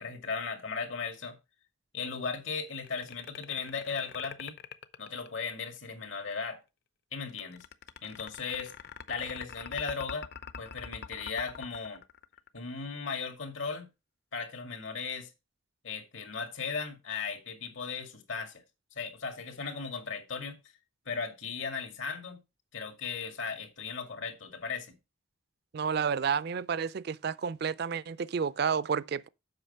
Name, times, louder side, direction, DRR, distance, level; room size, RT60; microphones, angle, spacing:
voice 1, 0.0-1.4 1.9-4.6 5.0-6.6 7.1-7.6 8.0-8.7 9.1-10.3 10.6-12.0 12.5-13.9 14.3-15.3 15.8-18.6 18.9-20.6 21.1-22.4 22.7-25.0, left 5 dB, 80° left, 2.2 m, -37 dB
sound 1, 2.7-5.9 7.3-12.8, left 6 dB, 55° left, 0.6 m, -44 dB
voice 2, 25.7-29.3, right 6 dB, 55° right, 0.4 m, -30 dB
7.9 x 5.7 x 5.5 m
head